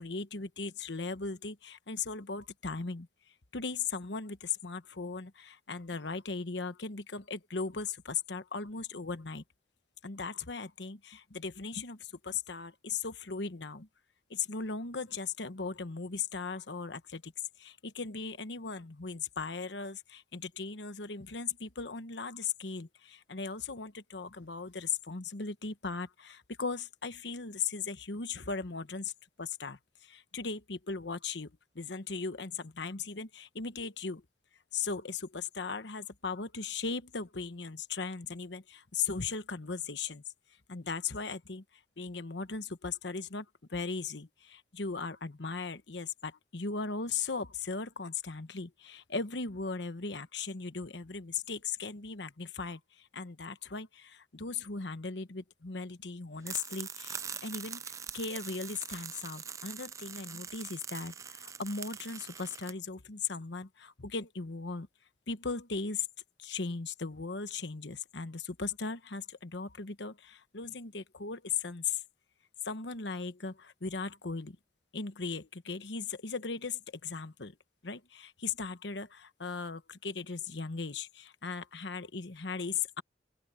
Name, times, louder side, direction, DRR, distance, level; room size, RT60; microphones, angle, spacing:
voice 1, 0.0-3.1 3.5-9.4 10.0-13.9 14.3-17.3 17.6-29.1 29.4-34.2 34.7-40.2 40.7-41.6 42.0-64.9 65.3-66.1 66.4-72.0 72.6-74.6 74.9-77.5 77.8-83.0, left 5 dB, 75° left, 1.2 m, -38 dB
sound 1, 56.4-62.7, right 7 dB, 15° right, 0.3 m, -43 dB
open air
head